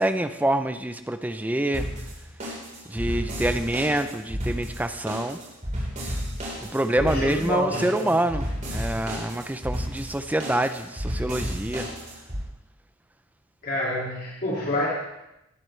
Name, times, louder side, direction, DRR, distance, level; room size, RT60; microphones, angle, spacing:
voice 1, 0.0-1.9 2.9-5.4 6.6-11.9, right 1 dB, 5° right, 9 dB, 0.4 m, -26 dB
sound 1, 1.7-12.4, equal, 35° right, 4.2 m, -32 dB
voice 2, 7.0-8.1 13.6-14.9, left 1 dB, 45° left, -5 dB, 2.4 m, -28 dB
18.5 x 12.5 x 3.3 m, 0.89 s
head